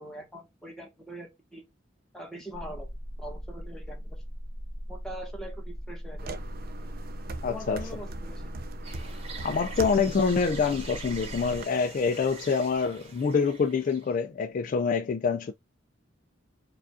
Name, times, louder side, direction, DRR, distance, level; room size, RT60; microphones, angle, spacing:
voice 1, 0.0-1.6 2.1-2.9 3.2-4.2 4.9-6.3 7.5-8.4, equal, 5° left, 1.3 m, -42 dB
sound 1, 2.5-11.6, equal, 20° left, 1.5 m, -39 dB
sound 2, 6.2-11.6, right 3 dB, 50° right, 0.5 m, -41 dB
voice 2, 7.4-7.8 9.4-15.5, left 5 dB, 45° left, 0.3 m, -26 dB
sound 3, 8.8-14.1, right 4 dB, 30° right, 1.1 m, -44 dB
4.9 x 2.4 x 2.5 m
head